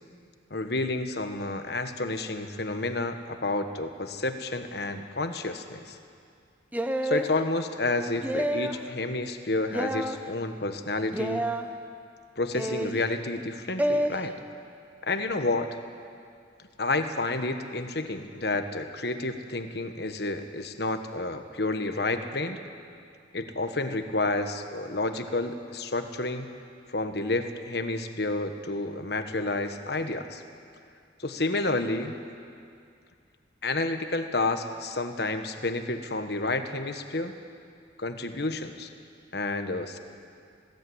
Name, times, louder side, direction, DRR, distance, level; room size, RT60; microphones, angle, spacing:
voice 1, 0.5-6.0 7.0-11.5 12.4-14.3 15.0-15.7 16.8-22.6 23.3-26.5 26.9-30.4 31.2-32.2 33.6-37.3 38.0-38.9 39.3-40.0, left 2 dB, 60° left, 7 dB, 1.3 m, -30 dB
sound 1, 6.7-7.3 8.2-8.8 9.7-10.2 11.1-11.6 12.5-13.0 13.8-14.1, right 1 dB, 10° right, 0.9 m, -28 dB
20.0 x 17.5 x 9.6 m, 2.4 s
head